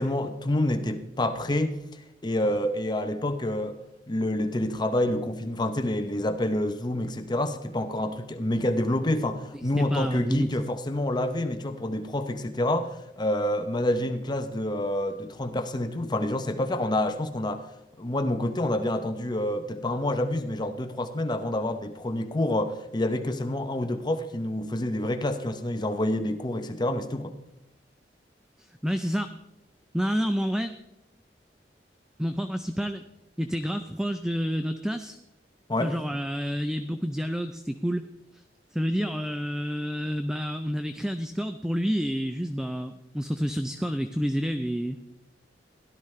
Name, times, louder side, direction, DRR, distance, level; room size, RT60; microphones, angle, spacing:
voice 1, 0.0-1.8 2.2-3.8 4.1-17.6 18.0-27.3 35.7-35.9, left 1 dB, 25° left, 7 dB, 0.8 m, -28 dB
voice 2, 9.5-10.7 28.6-29.3 29.9-30.8 32.2-33.0 33.4-35.2 35.8-38.0 38.3-38.4 38.7-45.0, equal, 5° right, 8 dB, 0.4 m, -29 dB
16.5 x 12.0 x 3.3 m, 0.92 s
head